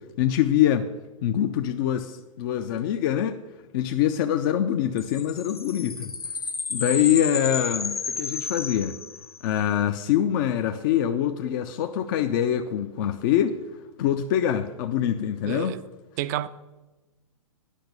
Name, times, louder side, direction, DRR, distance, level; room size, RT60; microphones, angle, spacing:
voice 1, 0.2-0.9 1.2-3.4 3.7-6.1 6.7-9.0 9.4-13.6 14.0-15.8, left 10 dB, 35° left, 0.5 m, -24 dB
sound 1, 5.0-9.6, left 4 dB, 85° left, 0.7 m, -32 dB
voice 2, 15.4-15.8 16.2-16.5, right 13 dB, 30° right, 0.4 m, -29 dB
10.0 x 5.9 x 6.7 m
figure-of-eight pair, 115°, 18 cm